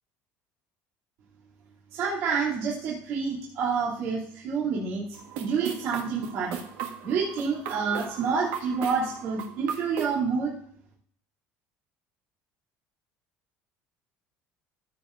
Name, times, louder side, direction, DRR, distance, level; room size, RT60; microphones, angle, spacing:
voice 1, 1.9-5.0 5.4-6.6 7.0-10.5, right 5 dB, 55° right, -7 dB, 2.9 m, -28 dB
sound 1, 5.1-10.2, right 7 dB, 70° right, 1.6 m, -37 dB
15.0 x 8.0 x 2.6 m, 0.63 s
cardioid pair, 160°, 5 cm